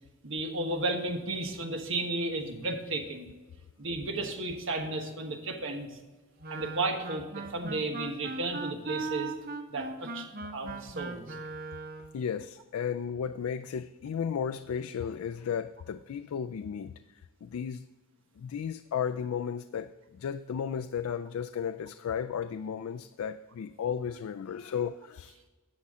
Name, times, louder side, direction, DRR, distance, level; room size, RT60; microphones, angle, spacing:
voice 1, 0.2-3.3 3.8-6.0 6.5-9.3 9.7-11.4, right 2 dB, 60° right, 3 dB, 1.3 m, -33 dB
Wind instrument woodwind instrument, 6.4-12.2, right 3 dB, 45° right, 0.8 m, -39 dB
voice 2, 12.1-16.9 17.4-17.8 18.4-25.5, left 7 dB, 85° left, 9 dB, 0.3 m, -34 dB
11.0 x 7.3 x 3.7 m, 1.3 s
head